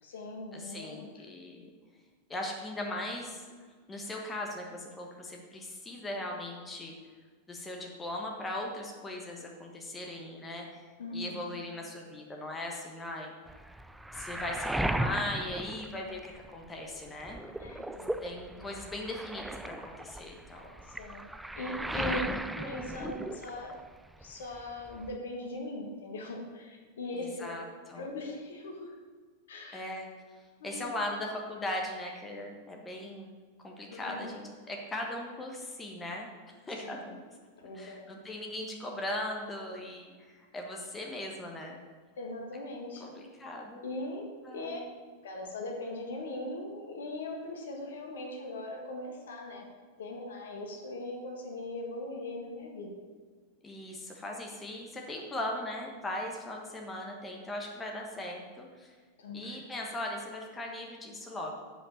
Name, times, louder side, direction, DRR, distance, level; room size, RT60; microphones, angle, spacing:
voice 1, 0.0-1.2 11.0-11.5 17.6-18.4 20.9-22.2 22.5-23.8 24.2-27.7 27.9-28.9 29.5-29.8 30.6-30.9 33.9-34.3 36.8-37.2 37.6-38.1 42.2-43.2 43.8-44.8 45.2-49.7 50.0-52.9 59.2-59.6, left 2 dB, 60° left, 1 dB, 1.6 m, -40 dB
voice 2, 0.5-1.7 2.3-3.4 3.9-6.9 7.5-10.7 11.1-13.3 14.1-17.4 18.2-20.7 21.9-22.2 27.1-27.6 27.9-28.0 29.7-30.1 30.6-33.3 33.6-36.3 36.7-37.2 37.7-41.7 43.0-43.8 44.5-44.9 53.6-58.9 59.3-61.6, left 1 dB, 15° left, 1 dB, 1.2 m, -39 dB
Waves surf, 13.5-16.7 17.0-24.0 24.2-25.2, right 1 dB, 5° right, 0.4 m, -37 dB
7.8 x 5.5 x 6.6 m, 1.5 s
figure-of-eight pair, 90°, 0 cm